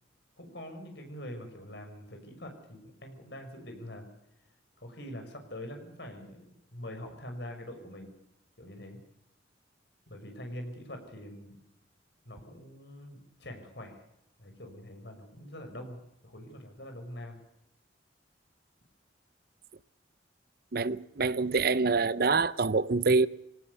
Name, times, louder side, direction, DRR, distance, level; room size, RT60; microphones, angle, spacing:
voice 1, 0.4-4.1 4.8-8.1 8.6-9.0 10.1-11.6 12.2-14.0 14.4-16.0 16.2-17.4, left 1 dB, 65° left, 6.4 m, -44 dB
voice 2, 20.7-23.3, right 4 dB, 55° right, 0.7 m, -26 dB
24.0 x 18.5 x 7.1 m
head